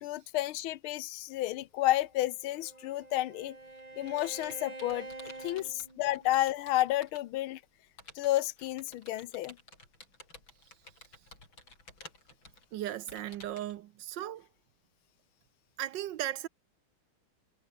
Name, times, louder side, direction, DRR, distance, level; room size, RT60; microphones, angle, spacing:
voice 1, 0.0-3.6 4.0-7.6 8.1-9.6, left 15 dB, 85° left, 1.6 m, -31 dB
Bowed string instrument, 2.1-6.5, right 2 dB, 20° right, 2.5 m, -47 dB
Computer keyboard, 3.3-7.4 8.0-13.7, left 2 dB, 65° left, 7.9 m, -54 dB
voice 2, 12.7-14.5 15.8-16.5, right 12 dB, 70° right, 1.3 m, -36 dB
omnidirectional pair, 2.3 m